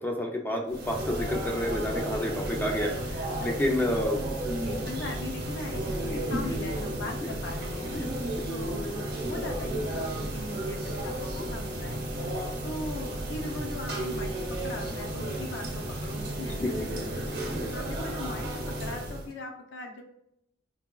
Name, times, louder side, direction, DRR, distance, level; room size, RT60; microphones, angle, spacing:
voice 1, 0.0-4.2 6.0-6.2 7.2-7.3 7.8-8.1 16.6-16.7 17.5-17.6, left 1 dB, 10° left, 1 dB, 0.4 m, -30 dB
sound 1, 0.7-19.3, right 1 dB, 50° right, 0.8 m, -33 dB
voice 2, 4.6-8.1 8.5-12.0 12.3-20.0, left 2 dB, 60° left, 2 dB, 0.6 m, -40 dB
4.1 x 2.3 x 2.3 m, 0.77 s
head